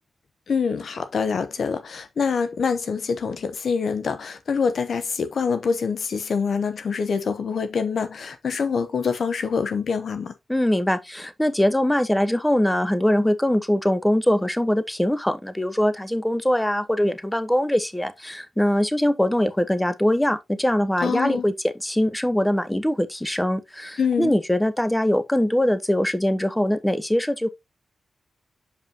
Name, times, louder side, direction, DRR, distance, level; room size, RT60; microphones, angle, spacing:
voice 1, 0.5-10.3 21.0-21.4 24.0-24.3, left 5 dB, 70° left, 0.8 m, -25 dB
voice 2, 10.5-27.5, left 1 dB, 10° left, 0.9 m, -22 dB
6.7 x 5.4 x 2.7 m
supercardioid pair, 40°, 0 cm